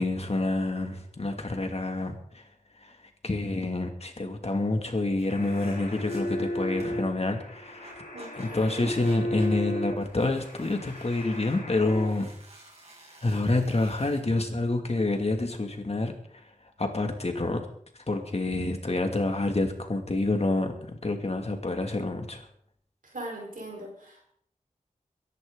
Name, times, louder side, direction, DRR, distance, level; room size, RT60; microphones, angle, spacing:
voice 1, 0.0-2.4 2.8-2.9 3.2-7.9 8.4-12.3 13.2-16.4 16.8-17.7 18.1-22.5, left 2 dB, 50° left, 4 dB, 2.5 m, -28 dB
sound 1, 5.2-7.1 7.7-14.2, right 2 dB, 50° right, 6.7 m, -52 dB
sound 2, 5.3-12.1, left 1 dB, 80° left, 4.0 m, -35 dB
voice 2, 8.1-8.9 23.0-24.3, right 1 dB, 85° right, 0 dB, 4.6 m, -40 dB
23.0 x 11.0 x 4.0 m, 0.64 s
wide cardioid pair, 70°, 14 cm